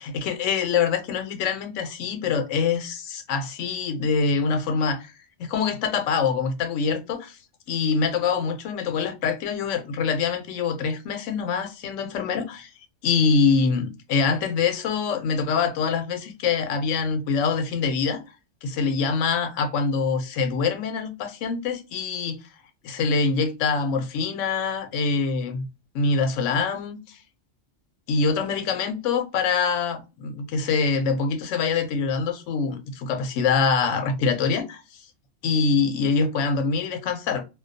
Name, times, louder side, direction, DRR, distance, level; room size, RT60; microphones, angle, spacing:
voice 1, 0.0-5.1 5.4-7.4 7.7-12.7 13.0-18.2 18.6-22.4 22.8-25.7 25.9-27.2 28.1-35.0 35.4-37.4, left 5 dB, 75° left, 0.9 m, -24 dB
2.2 x 2.2 x 2.5 m
omnidirectional pair, 1.3 m